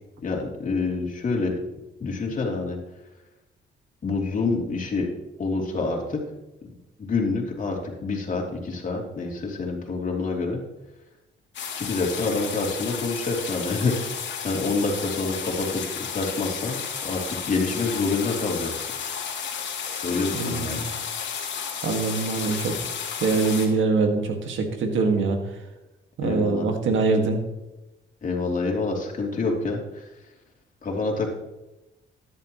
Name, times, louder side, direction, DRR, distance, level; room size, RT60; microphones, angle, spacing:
voice 1, 0.2-1.5 2.0-2.8 4.0-5.1 5.4-6.2 7.0-10.6 11.8-14.2 14.4-15.8 16.1-18.9 20.0-20.9 26.2-26.7 28.2-30.0 30.8-31.3, left 3 dB, 40° left, -1 dB, 3.1 m, -27 dB
sound 1, 11.5-23.7, left 7 dB, 65° left, 2.4 m, -32 dB
voice 2, 20.3-20.8 21.8-22.7 23.2-25.4 26.2-27.4, right 4 dB, 75° right, 4 dB, 1.9 m, -23 dB
13.5 x 10.5 x 3.1 m, 1.0 s
cardioid pair, 90°, 20 cm